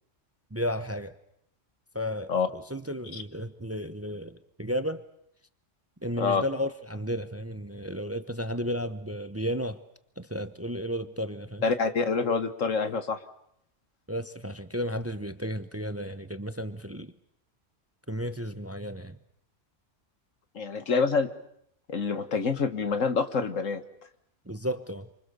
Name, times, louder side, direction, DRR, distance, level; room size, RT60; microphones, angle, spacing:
voice 1, 0.5-1.1 1.9-5.0 6.0-9.8 10.2-11.6 14.1-17.1 18.1-19.2 24.5-25.1, equal, 15° right, 0.8 m, -33 dB
voice 2, 11.6-13.2 20.6-21.3 21.9-23.8, left 5 dB, 85° left, 1.9 m, -26 dB
27.5 x 25.5 x 6.9 m
omnidirectional pair, 1.3 m